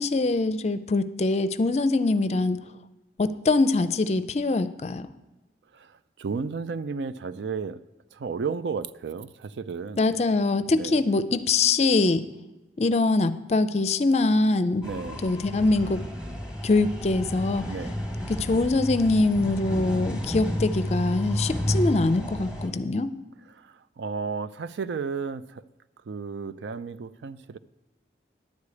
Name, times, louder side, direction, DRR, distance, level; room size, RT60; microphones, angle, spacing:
voice 1, 0.0-2.6 3.2-5.1 10.0-12.3 12.8-14.9 15.2-16.0 16.6-17.7 18.3-23.2, left 3 dB, 40° left, 13 dB, 0.4 m, -23 dB
voice 2, 5.7-7.8 8.1-10.0 10.7-11.0 14.8-15.3 17.7-18.0 23.6-25.6 26.1-27.6, right 5 dB, 90° right, 15 dB, 0.4 m, -33 dB
sound 1, 14.8-22.7, left 1 dB, 5° right, 1.4 m, -31 dB
10.5 x 4.9 x 8.3 m, 1.1 s
head